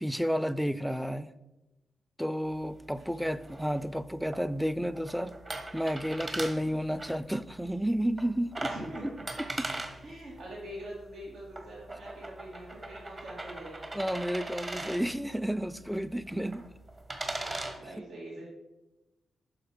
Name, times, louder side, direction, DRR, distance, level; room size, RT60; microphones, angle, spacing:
voice 1, 0.0-1.3 2.2-5.3 5.7-8.7 9.6-9.7 13.9-16.7 17.3-17.5 17.9-18.0, equal, ahead, 15 dB, 0.5 m, -31 dB
sound 1, 2.5-17.8, right 2 dB, 35° right, 1.4 m, -41 dB
voice 2, 8.7-9.2 10.0-13.9 17.8-18.4, equal, 80° right, -5 dB, 2.3 m, -43 dB
9.5 x 6.1 x 5.0 m, 1.0 s
cardioid pair, 70°, 0 cm